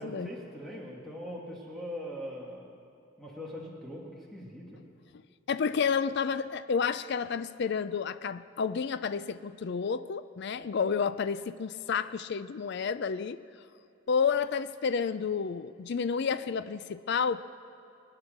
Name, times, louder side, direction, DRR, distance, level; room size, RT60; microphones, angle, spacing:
voice 1, 0.0-2.7 3.2-4.7, equal, ahead, -3 dB, 1.8 m, -41 dB
voice 2, 5.5-13.4 14.1-17.4, left 6 dB, 55° left, 13 dB, 0.4 m, -30 dB
22.5 x 9.7 x 6.6 m, 2.7 s
head